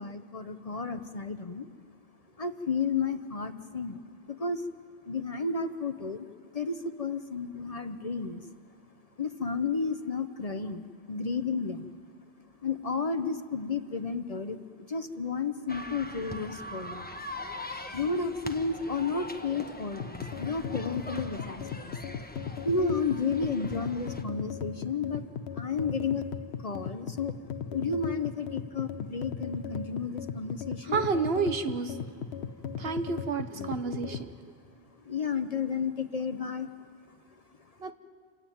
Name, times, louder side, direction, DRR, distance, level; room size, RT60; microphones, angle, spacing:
voice 1, 0.0-1.7 2.4-4.6 5.0-6.3 6.5-8.5 9.2-11.9 12.6-17.1 17.9-22.0 22.6-25.2 25.5-26.3 26.6-27.3 27.7-31.0 33.5-33.8 34.9-37.2, left 4 dB, 40° left, 9 dB, 0.8 m, -32 dB
sound 1, 15.7-24.2, left 1 dB, 10° left, 1.1 m, -42 dB
sound 2, 20.0-34.3, left 7 dB, 80° left, 1.0 m, -37 dB
voice 2, 30.9-31.9 32.8-34.3 37.8-37.9, right 5 dB, 70° right, 9 dB, 1.3 m, -30 dB
27.5 x 16.5 x 9.2 m, 2.2 s
omnidirectional pair, 1.1 m